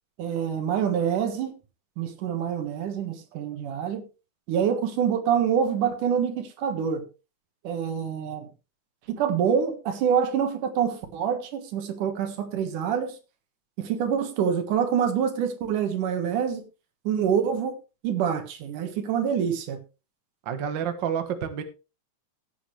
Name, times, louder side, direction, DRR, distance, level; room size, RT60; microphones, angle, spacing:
voice 1, 0.2-1.6 2.0-4.0 4.5-7.0 7.6-8.5 9.1-13.2 13.8-16.6 17.0-17.8 18.0-19.8, right 8 dB, 85° right, 3.1 m, -26 dB
voice 2, 20.4-21.6, right 8 dB, 50° right, 1.6 m, -29 dB
16.5 x 8.1 x 3.3 m
omnidirectional pair, 3.5 m